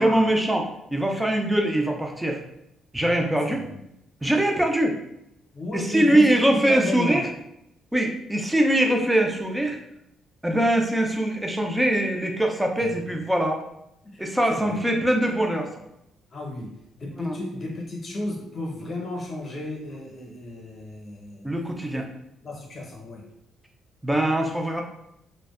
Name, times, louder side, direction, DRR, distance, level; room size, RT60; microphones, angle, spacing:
voice 1, 0.0-2.4 2.9-3.6 4.2-5.0 5.7-7.3 7.9-9.8 10.4-13.6 14.2-15.7 17.1-17.4 21.4-22.1 24.0-24.8, right 1 dB, 5° right, 2 dB, 0.4 m, -22 dB
voice 2, 5.5-7.2 12.8-12.9 14.0-14.8 16.3-21.5 22.4-23.2, left 2 dB, 45° left, -1 dB, 0.8 m, -33 dB
2.4 x 2.1 x 2.4 m, 0.80 s
cardioid pair, 90°, 0 cm